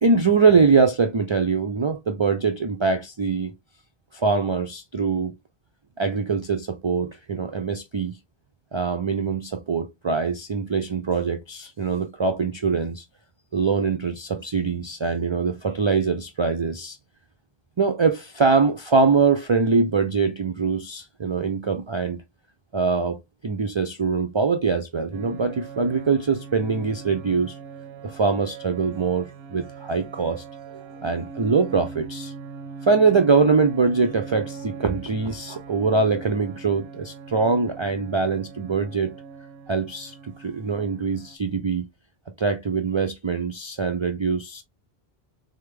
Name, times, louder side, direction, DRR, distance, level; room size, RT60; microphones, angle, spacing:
voice 1, 0.0-3.5 4.1-5.3 6.0-8.2 8.7-13.0 13.5-17.0 17.8-22.2 22.7-27.6 28.0-30.4 30.7-32.3 32.8-39.1 39.7-41.9 42.4-44.6, right 4 dB, 45° right, 0.4 m, -23 dB
sound 1, 25.1-41.4, right 5 dB, 80° right, 0.8 m, -41 dB
3.7 x 3.4 x 3.4 m
omnidirectional pair, 1.0 m